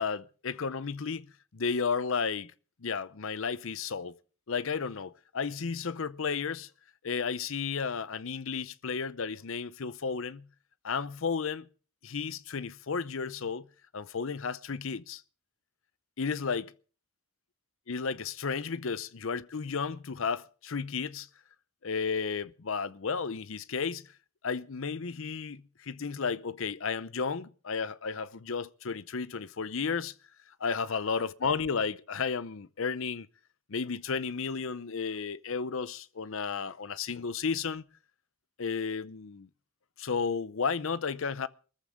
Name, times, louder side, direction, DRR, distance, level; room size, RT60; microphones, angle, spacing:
voice 1, 0.0-2.5 2.8-4.1 4.5-6.7 7.0-10.5 10.8-11.7 12.0-13.7 13.9-15.2 16.2-16.7 17.9-21.3 21.8-24.1 24.4-30.1 30.6-33.3 33.7-37.8 38.6-39.5 40.0-41.5, left 5 dB, 60° left, 0.6 m, -33 dB
22.0 x 14.0 x 3.6 m
head